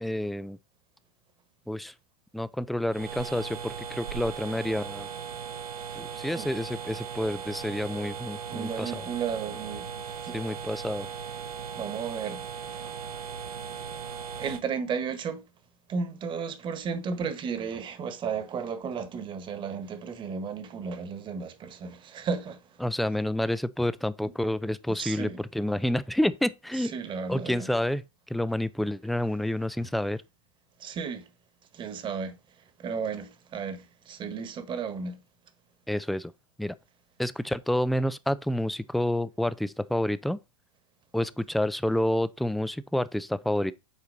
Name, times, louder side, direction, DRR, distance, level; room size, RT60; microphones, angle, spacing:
voice 1, 0.0-0.6 1.7-1.9 2.3-5.1 6.0-9.0 10.3-11.1 22.8-26.9 27.3-28.0 28.3-30.2 35.9-36.3 36.6-36.8 37.2-40.4 41.1-43.7, left 1 dB, ahead, 0.3 m, -29 dB
sound 1, 2.9-14.6, right 7 dB, 85° right, 1.1 m, -38 dB
voice 2, 8.5-10.4 11.8-13.0 14.4-15.4 15.9-22.8 24.9-25.4 26.7-27.7 29.8-29.9 30.8-31.3 31.7-35.2, right 6 dB, 25° right, 1.3 m, -34 dB
8.4 x 4.6 x 3.9 m
hypercardioid pair, 115°, 18 cm